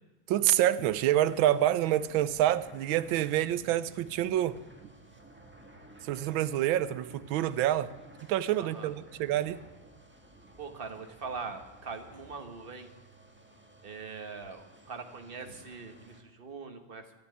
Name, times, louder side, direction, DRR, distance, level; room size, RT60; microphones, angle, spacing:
voice 1, 0.3-4.6 6.0-7.9 8.3-9.6, right 12 dB, 85° right, 15 dB, 1.5 m, -27 dB
sound 1, 0.9-16.2, right 1 dB, 5° right, 1.3 m, -55 dB
voice 2, 8.6-8.9 10.6-12.9 13.8-17.1, right 4 dB, 30° right, 6 dB, 1.3 m, -42 dB
12.5 x 11.5 x 9.7 m, 1.1 s
omnidirectional pair, 2.1 m